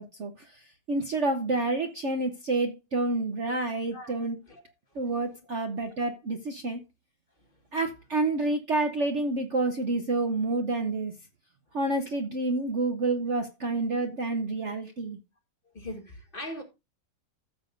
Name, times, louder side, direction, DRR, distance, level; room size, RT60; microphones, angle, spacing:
voice 1, 0.0-4.4 4.9-6.8 7.7-11.1 11.7-15.2, right 2 dB, 50° right, 1.1 m, -29 dB
voice 2, 3.9-4.6 5.4-5.7 15.7-16.6, left 1 dB, 30° left, 1.8 m, -41 dB
14.5 x 7.3 x 2.6 m
omnidirectional pair, 2.0 m